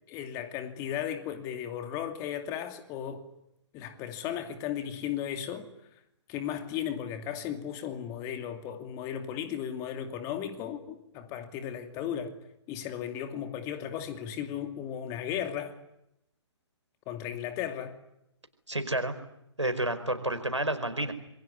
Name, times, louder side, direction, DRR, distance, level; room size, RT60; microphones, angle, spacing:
voice 1, 0.1-3.2 3.7-5.7 6.3-12.3 12.7-15.7 17.1-17.9, left 9 dB, 20° left, 2.6 m, -35 dB
voice 2, 18.7-19.1 19.6-21.1, right 1 dB, 85° right, 4.9 m, -30 dB
27.0 x 23.0 x 9.8 m
figure-of-eight pair, 130°, 15 cm